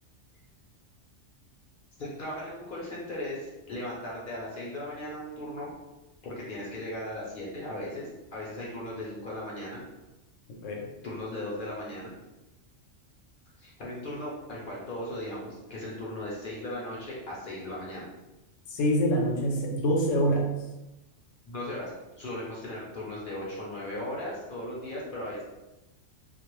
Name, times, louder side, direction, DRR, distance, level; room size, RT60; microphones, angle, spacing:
voice 1, 2.0-5.7 6.2-9.8 11.0-12.1 13.6-18.1 21.4-21.9 22.2-25.4, left 1 dB, 55° left, -5 dB, 0.6 m, -37 dB
voice 2, 18.7-20.5, equal, 80° left, 0 dB, 0.9 m, -25 dB
2.3 x 2.0 x 3.0 m, 1.0 s
omnidirectional pair, 1.3 m